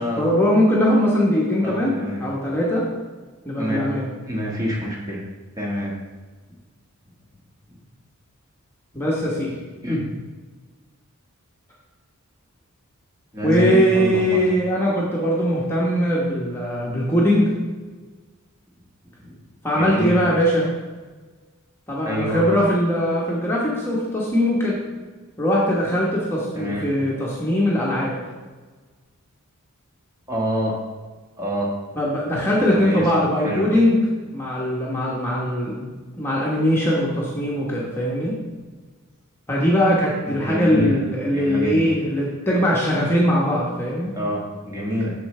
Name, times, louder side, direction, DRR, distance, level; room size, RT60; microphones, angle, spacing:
voice 1, 0.0-2.9 3.4-4.1 8.9-9.6 13.4-17.5 19.6-20.7 21.9-24.8 25.4-28.1 32.0-34.0 34.3-38.3 39.5-44.1, equal, 10° left, -5 dB, 1.2 m, -21 dB
voice 2, 1.6-2.2 3.6-3.8 4.3-5.2 5.6-5.9 9.8-10.2 13.3-14.4 19.2-19.3 19.7-20.1 22.0-22.4 26.5-26.9 30.3-30.7 31.4-31.7 32.7-33.0 33.4-33.6 40.3-41.0 41.3-41.9 44.1-45.1, equal, 15° right, -3 dB, 1.6 m, -26 dB
8.5 x 6.5 x 3.3 m, 1.4 s
head